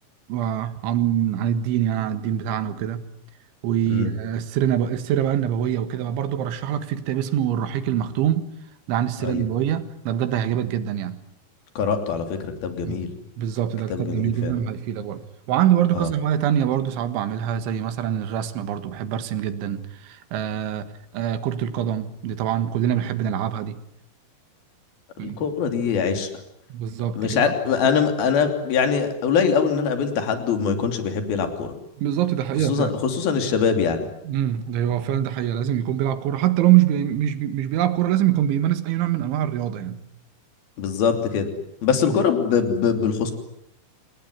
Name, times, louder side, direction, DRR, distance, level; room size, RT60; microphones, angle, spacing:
voice 1, 0.3-3.1 3.6-8.5 8.9-11.2 12.8-13.0 13.4-15.2 15.5-23.8 25.2-25.4 26.7-27.5 32.0-33.0 34.2-40.0 42.1-42.2, right 11 dB, 90° right, 4.0 m, -24 dB
voice 2, 11.8-13.1 13.9-14.5 15.9-16.1 25.2-26.3 27.2-31.7 32.6-34.1 40.8-41.5 41.8-43.3, left 6 dB, 55° left, 4.7 m, -23 dB
29.0 x 19.5 x 9.7 m
omnidirectional pair, 5.3 m